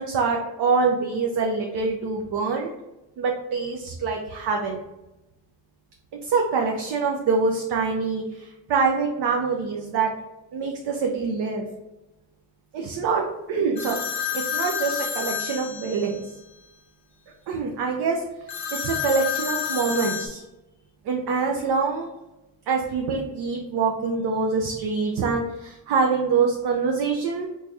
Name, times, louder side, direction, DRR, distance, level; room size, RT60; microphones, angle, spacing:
voice 1, 0.0-2.7 3.2-4.8 6.2-10.1 10.5-11.7 12.7-14.0 14.3-16.2 17.5-18.2 18.7-20.4 21.1-22.1 22.7-27.5, right 4 dB, 60° right, 1 dB, 0.6 m, -25 dB
sound 1, 13.8-16.3 18.5-20.3, left 8 dB, 60° left, 0.7 m, -29 dB
3.1 x 2.3 x 3.9 m, 0.98 s
cardioid pair, 75°, 44 cm